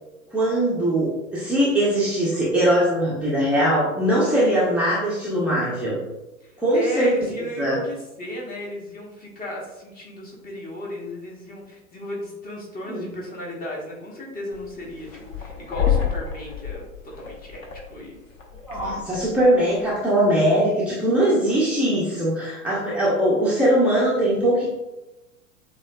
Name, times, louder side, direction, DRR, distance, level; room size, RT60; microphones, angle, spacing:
voice 1, 0.3-6.0 6.6-7.1 7.6-7.8 12.9-13.0 18.7-24.7, right 1 dB, 5° right, -8 dB, 0.8 m, -21 dB
voice 2, 6.4-18.2 18.8-19.1, equal, 20° left, -1 dB, 1.2 m, -34 dB
sound 1, 14.5-19.9, left 9 dB, 70° left, 1.2 m, -29 dB
7.2 x 2.8 x 2.3 m, 1.0 s
figure-of-eight pair, 95°, 43 cm